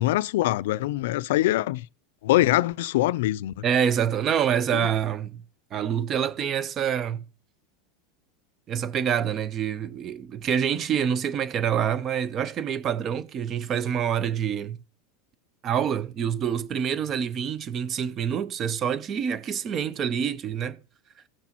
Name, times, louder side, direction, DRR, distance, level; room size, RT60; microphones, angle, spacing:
voice 1, 0.0-1.9 2.2-3.5 4.7-4.8, left 15 dB, 80° left, 0.4 m, -23 dB
voice 2, 3.6-5.4 5.7-7.2 8.7-14.8 15.6-20.8, right 8 dB, 35° right, 0.7 m, -26 dB
16.0 x 6.1 x 3.0 m
supercardioid pair, 135°, 0 cm